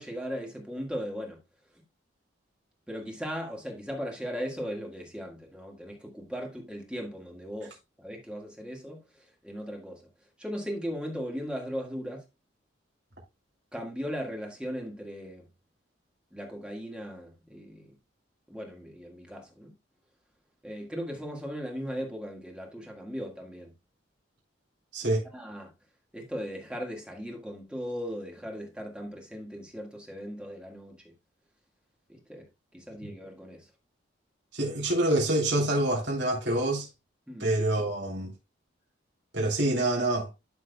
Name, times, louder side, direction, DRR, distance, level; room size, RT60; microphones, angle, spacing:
voice 1, 0.0-1.4 2.9-10.1 10.4-12.2 13.7-15.5 16.3-17.9 18.5-19.7 20.6-23.7 25.0-25.7 26.1-31.1 32.1-32.5 32.7-33.7 37.3-37.5, equal, 5° right, 1.7 m, -38 dB
voice 2, 24.9-25.2 33.0-33.1 34.5-36.9 37.4-38.3 39.3-40.3, right 1 dB, 60° right, 3.2 m, -26 dB
12.0 x 6.3 x 2.3 m
head